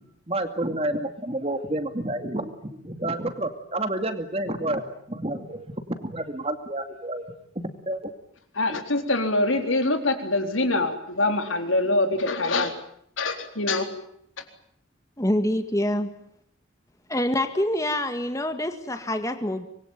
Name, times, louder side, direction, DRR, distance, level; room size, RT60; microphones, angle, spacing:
voice 1, 0.3-4.8 5.1-7.4 7.9-8.1 8.7-8.8, right 1 dB, 30° right, 8 dB, 2.4 m, -29 dB
voice 2, 8.5-12.7 13.2-13.9 14.4-14.5, left 2 dB, 85° left, 6 dB, 4.0 m, -24 dB
voice 3, 15.2-16.1 17.1-19.7, left 1 dB, 15° left, 8 dB, 1.8 m, -26 dB
25.5 x 22.5 x 9.2 m, 0.68 s
head